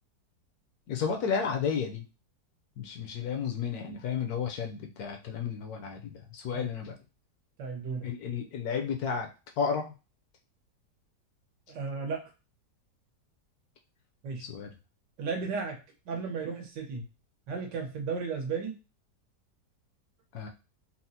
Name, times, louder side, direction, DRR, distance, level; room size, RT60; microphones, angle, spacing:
voice 1, 0.9-2.1 2.8-6.9 8.0-9.3 9.6-9.9 14.4-14.7 20.3-20.5, left 6 dB, 70° left, 3 dB, 0.9 m, -32 dB
voice 2, 7.6-8.1 11.7-12.2 14.2-14.4 15.2-15.8 16.1-17.0 17.5-18.8, right 5 dB, 85° right, 2 dB, 1.6 m, -34 dB
4.1 x 2.0 x 2.7 m, 0.29 s
omnidirectional pair, 1.9 m